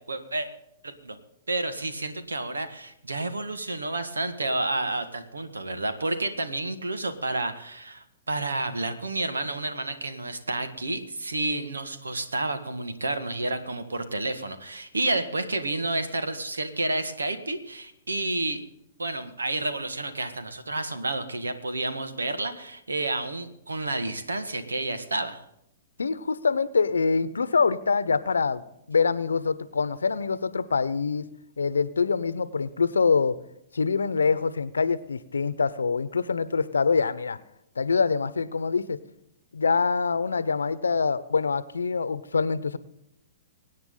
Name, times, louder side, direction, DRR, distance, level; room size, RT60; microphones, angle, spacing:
voice 1, 0.1-0.5 0.8-1.2 1.5-18.6 19.0-25.4, right 2 dB, 85° right, 9 dB, 1.7 m, -30 dB
voice 2, 26.0-28.6 28.9-31.3 31.6-33.4 33.7-37.4 37.8-39.0 39.5-42.8, left 5 dB, 80° left, 16 dB, 0.9 m, -25 dB
24.0 x 9.5 x 3.8 m, 0.80 s
hypercardioid pair, 120°, 0 cm